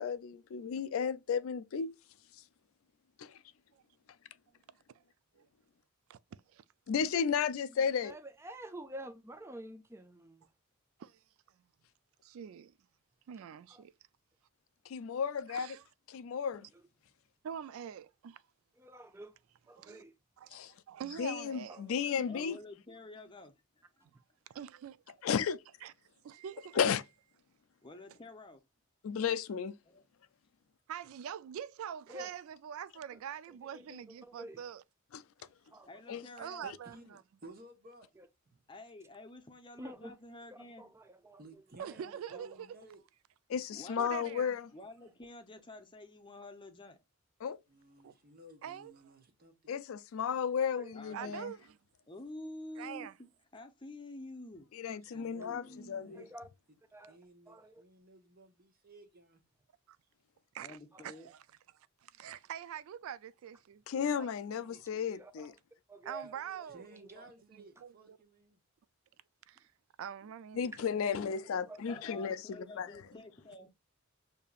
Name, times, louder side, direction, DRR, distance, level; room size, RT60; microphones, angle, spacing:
voice 1, 0.0-2.0 3.2-3.4 6.9-8.2 14.9-15.8 16.1-16.7 20.5-20.7 21.2-22.6 25.2-25.6 26.8-27.0 29.0-29.8 35.1-35.2 36.1-36.2 43.5-44.7 47.4-47.6 49.7-51.5 54.7-56.2 63.9-65.5 70.5-72.9, left 7 dB, 70° left, 0.3 m, -34 dB
voice 2, 8.0-10.4 13.7-13.8 18.8-19.3 19.7-20.1 21.7-21.9 32.1-32.3 33.9-34.6 35.7-35.9 38.2-38.3 39.8-40.1 40.8-41.4 41.8-42.0 50.7-51.3 56.1-56.5 56.9-57.2 57.5-57.8 65.1-65.5 65.9-66.3 67.0-67.1 71.7-71.9, right 1 dB, 10° right, 0.5 m, -48 dB
voice 3, 12.2-12.7 13.3-13.9 15.5-15.8 17.4-18.4 19.7-20.0 20.4-20.6 20.9-21.8 24.5-25.0 25.8-25.9 26.2-26.8 30.9-34.8 36.4-37.0 41.8-42.7 44.0-44.6 48.0-48.1 48.6-48.9 51.1-51.8 52.8-53.1 59.9-60.0 60.5-60.8 61.0-61.4 62.0-64.3 64.6-64.8 66.0-66.9 67.8-68.2 69.5-69.7 70.0-71.0, right 8 dB, 70° right, 0.3 m, -44 dB
voice 4, 22.3-24.1 27.8-28.6 29.9-30.0 35.9-36.7 38.7-40.9 43.7-44.4 44.7-47.0 50.9-51.4 52.1-53.3 53.5-54.7 55.1-56.2 60.6-61.3 71.9-73.7, left 2 dB, 20° left, 0.7 m, -49 dB
voice 5, 36.6-38.1 38.5-38.6 41.4-43.0 47.7-49.7 55.0-56.3 57.1-59.4 66.2-66.3 66.7-68.6, right 2 dB, 45° right, 1.2 m, -56 dB
6.6 x 2.8 x 2.4 m
head